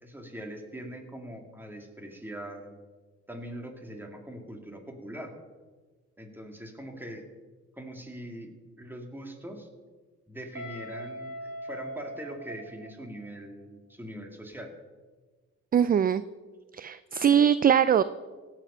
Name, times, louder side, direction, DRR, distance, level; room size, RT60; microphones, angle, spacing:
voice 1, 0.0-2.8 3.3-5.3 6.2-7.2 7.8-9.7 10.3-14.7, equal, 5° right, 3 dB, 2.2 m, -42 dB
Guitar, 10.5-13.4, right 1 dB, 55° right, 3.9 m, -41 dB
voice 2, 15.7-16.2 16.7-18.0, right 8 dB, 30° right, 15 dB, 0.4 m, -21 dB
17.0 x 7.6 x 5.6 m, 1.4 s
cardioid pair, 90°, 30 cm